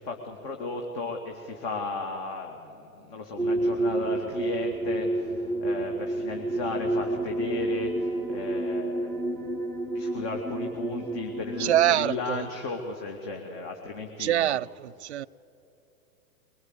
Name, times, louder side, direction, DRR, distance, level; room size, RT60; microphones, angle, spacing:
voice 1, 0.0-9.4 9.9-14.6 15.1-15.2, left 3 dB, 40° left, 2.4 m, -35 dB
sound 1, 3.4-12.2, right 2 dB, 5° left, 0.7 m, -30 dB
voice 2, 11.6-12.4 14.2-15.3, right 12 dB, 50° right, 0.4 m, -25 dB
23.5 x 21.0 x 8.2 m
figure-of-eight pair, 110°, 44 cm